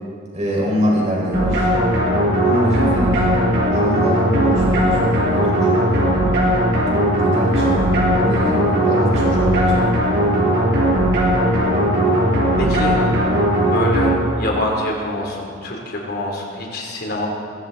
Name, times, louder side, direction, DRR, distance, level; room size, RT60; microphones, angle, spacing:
voice 1, 0.3-1.7 2.4-3.2 3.7-6.2 7.1-9.8, equal, 35° right, -4 dB, 5.2 m, -24 dB
sound 1, 1.3-14.6, equal, 60° right, 4.7 m, -18 dB
voice 2, 12.6-12.9 13.7-14.1 14.4-17.3, left 1 dB, 55° left, 0 dB, 3.3 m, -25 dB
23.0 x 14.5 x 4.1 m, 2.3 s
head